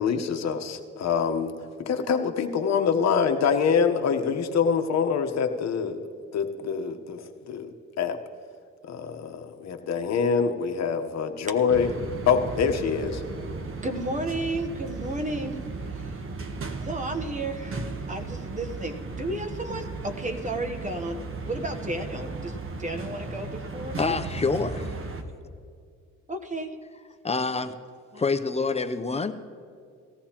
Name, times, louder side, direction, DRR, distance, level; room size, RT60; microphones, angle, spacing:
voice 1, 0.0-1.5 1.8-6.0 6.3-8.2 8.8-11.9 12.3-13.2, left 6 dB, 60° left, 6 dB, 1.1 m, -25 dB
sound 1, 11.7-25.2, right 3 dB, 45° right, 1.2 m, -36 dB
voice 2, 13.8-15.6 16.0-16.1 16.8-21.2 21.5-24.1 26.3-26.8 28.1-28.2, right 1 dB, 25° right, 6 dB, 1.0 m, -33 dB
voice 3, 24.0-24.9 27.2-27.8 28.2-29.3, left 4 dB, 20° left, 8 dB, 0.6 m, -27 dB
18.5 x 14.0 x 2.9 m, 2.4 s
cardioid pair, 90°, 30 cm